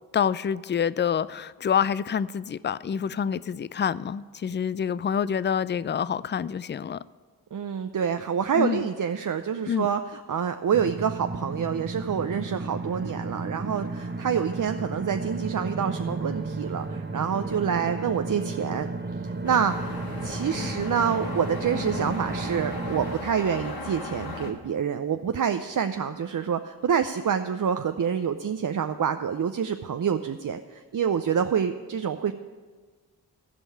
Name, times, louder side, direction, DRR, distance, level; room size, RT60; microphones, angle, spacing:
voice 1, 0.1-7.0 8.6-8.9 9.7-9.9, left 7 dB, 30° left, 0.4 m, -27 dB
voice 2, 7.5-18.9 19.2-32.3, right 7 dB, 50° right, 0.6 m, -27 dB
sound 1, 10.7-23.2, right 3 dB, 25° right, 1.0 m, -33 dB
sound 2, 19.4-24.5, left 2 dB, 55° left, 1.7 m, -36 dB
15.0 x 5.4 x 8.5 m
cardioid pair, 45°, 42 cm